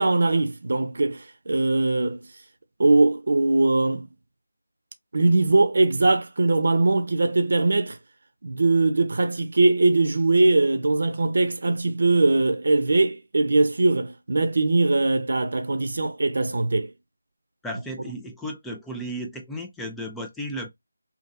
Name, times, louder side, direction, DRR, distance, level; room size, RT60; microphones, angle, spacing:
voice 1, 0.0-2.2 2.8-4.1 5.1-8.0 8.4-16.9, right 2 dB, 55° right, 0.7 m, -21 dB
voice 2, 17.6-20.7, equal, 5° left, 0.4 m, -34 dB
2.8 x 2.8 x 2.5 m
figure-of-eight pair, 165°, 0 cm